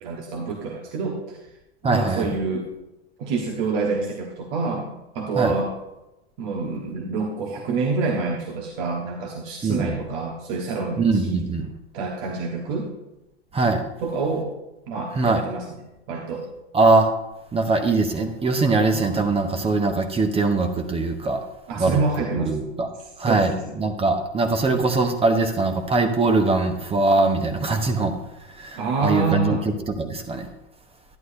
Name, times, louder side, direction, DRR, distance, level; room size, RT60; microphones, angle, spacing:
voice 1, 0.0-1.4 1.8-2.6 3.2-4.9 5.1-5.7 6.4-11.4 11.9-12.9 14.0-14.5 14.9-15.7 16.1-16.5 21.7-22.5 23.0-23.6 28.7-29.7, right 4 dB, 55° right, 0 dB, 1.4 m, -27 dB
voice 2, 1.8-2.3 5.4-5.5 9.6-10.0 11.0-11.7 13.5-13.8 15.1-15.4 16.7-17.1 17.5-21.4 21.8-22.0 22.4-22.9 23.2-28.1 28.6-29.6 29.9-30.5, right 3 dB, 15° right, 7 dB, 1.0 m, -21 dB
11.0 x 10.5 x 2.7 m, 0.95 s
hypercardioid pair, 90°, 33 cm